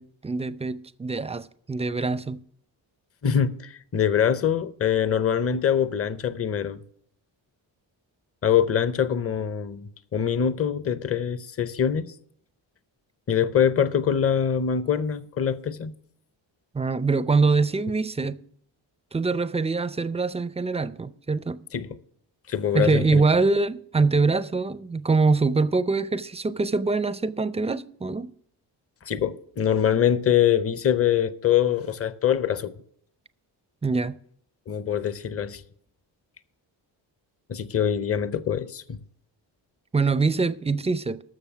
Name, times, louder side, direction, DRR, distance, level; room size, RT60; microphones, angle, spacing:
voice 1, 0.0-2.4 16.7-18.4 19.1-21.6 22.7-28.3 33.8-34.2 39.9-41.2, right 4 dB, 15° right, 0.4 m, -24 dB
voice 2, 3.2-6.8 8.4-12.0 13.3-15.9 21.7-21.9 22.5-23.2 29.1-32.7 34.7-35.6 37.5-39.0, left 8 dB, 30° left, 0.7 m, -24 dB
13.0 x 6.7 x 6.0 m
cardioid pair, 70°, 46 cm